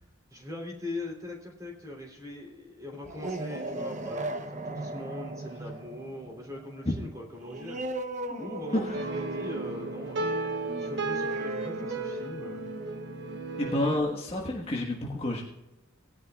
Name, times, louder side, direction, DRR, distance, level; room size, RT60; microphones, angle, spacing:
voice 1, 0.3-7.8 8.4-12.7, left 2 dB, 15° right, -1 dB, 3.2 m, -41 dB
sound 1, 2.9-14.2, right 1 dB, 35° right, 0.7 m, -38 dB
sound 2, 8.9-14.0, right 3 dB, 55° right, 1.3 m, -34 dB
voice 2, 13.6-15.4, left 1 dB, 25° left, -1 dB, 1.3 m, -29 dB
19.0 x 10.5 x 2.4 m, 0.95 s
head